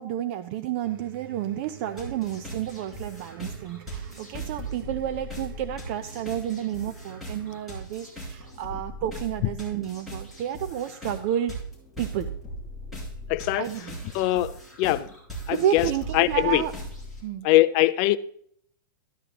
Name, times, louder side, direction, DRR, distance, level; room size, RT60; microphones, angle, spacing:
voice 1, 0.0-11.6 12.0-12.3 13.6-14.0 15.5-16.7 17.2-17.5, right 11 dB, 35° right, 0.6 m, -30 dB
sound 1, 0.8-7.6, right 6 dB, 85° right, 1.0 m, -47 dB
sound 2, 2.0-17.2, right 1 dB, ahead, 5.3 m, -39 dB
voice 2, 13.3-13.7 14.1-15.1 15.5-15.9 16.1-16.6 17.4-18.2, left 17 dB, 30° left, 0.3 m, -22 dB
13.5 x 11.5 x 3.0 m
hypercardioid pair, 160°, 11 cm